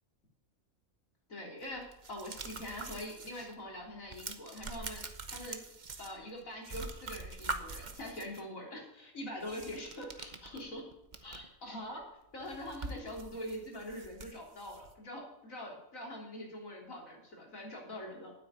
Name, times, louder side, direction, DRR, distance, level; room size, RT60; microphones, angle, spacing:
voice 1, 1.3-5.0 5.3-5.6 6.0-10.9 11.2-12.1 12.3-18.3, left 1 dB, 70° left, -1 dB, 3.8 m, -43 dB
sound 1, 1.6-3.5 3.8-6.4 6.6-8.4 9.4-11.5 11.9-12.0 12.3-14.9, right 3 dB, 35° right, 1.1 m, -44 dB
9.3 x 8.6 x 9.6 m, 0.83 s
omnidirectional pair, 1.4 m